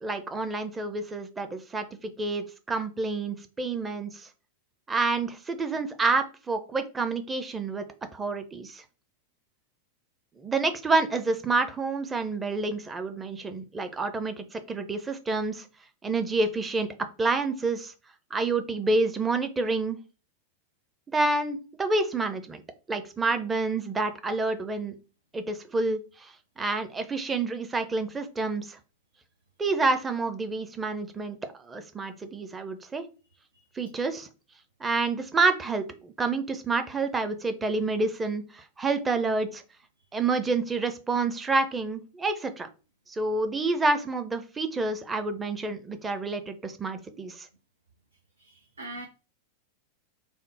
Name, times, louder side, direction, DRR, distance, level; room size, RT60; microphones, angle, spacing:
voice 1, 0.0-4.3 4.9-7.8 8.1-8.8 10.4-15.6 16.0-16.9 17.2-17.9 18.3-20.0 21.1-22.6 22.9-24.9 25.3-28.8 29.6-33.0 33.8-34.3 34.8-39.6 40.1-42.7 43.1-47.5, right 3 dB, 15° right, 8 dB, 0.6 m, -28 dB
voice 2, 48.4-49.1, right 2 dB, 80° right, 2 dB, 0.6 m, -42 dB
3.5 x 2.0 x 4.0 m, 0.33 s
figure-of-eight pair, 90°, 0 cm